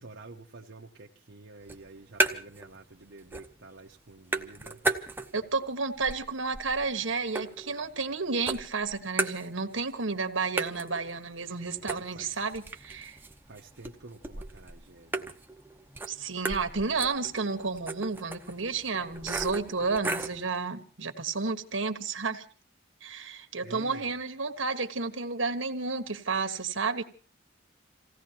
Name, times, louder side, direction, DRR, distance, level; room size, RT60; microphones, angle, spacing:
voice 1, 0.0-4.8 11.5-12.4 13.5-15.4 23.6-24.2, right 3 dB, 70° right, 1.0 m, -49 dB
sound 1, 1.6-2.7 3.0-3.7 3.9-5.5 5.9-8.1 8.5-9.9 10.2-10.3 10.6-20.4, right 2 dB, 10° right, 0.9 m, -35 dB
voice 2, 5.3-13.2 16.1-22.4 23.0-27.0, right 4 dB, 85° right, 1.5 m, -31 dB
28.0 x 17.0 x 2.9 m
head